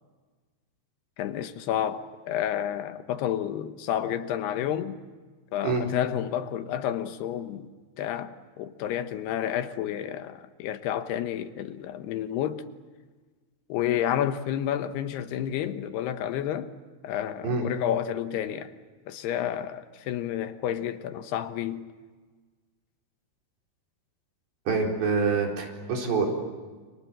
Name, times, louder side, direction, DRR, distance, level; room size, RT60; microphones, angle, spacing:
voice 1, 1.2-5.0 5.5-7.7 8.0-12.6 13.7-16.7 17.0-18.7 19.1-21.9, left 10 dB, 75° left, 3.0 m, -30 dB
voice 2, 24.7-26.3, right 4 dB, 85° right, 6.6 m, -26 dB
29.0 x 27.0 x 7.6 m
omnidirectional pair, 4.8 m